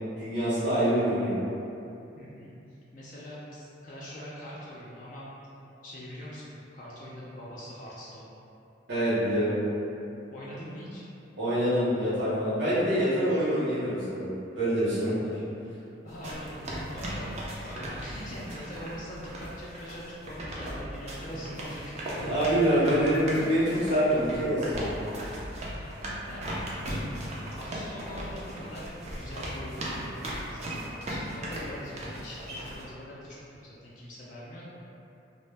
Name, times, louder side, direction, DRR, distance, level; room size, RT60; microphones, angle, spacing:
voice 1, 0.2-1.4 8.9-9.6 11.4-15.3 22.2-25.0, equal, 60° right, -12 dB, 0.7 m, -26 dB
voice 2, 2.2-2.5 2.9-5.3 5.8-8.3 10.3-11.0 16.0-17.4 17.6-22.2 22.6-22.9 25.7-25.9 26.3-34.7, equal, 40° left, -7 dB, 0.3 m, -43 dB
sound 1, 16.1-32.8, equal, 35° right, 0.4 m, -38 dB
2.0 x 2.0 x 3.2 m, 2.7 s
head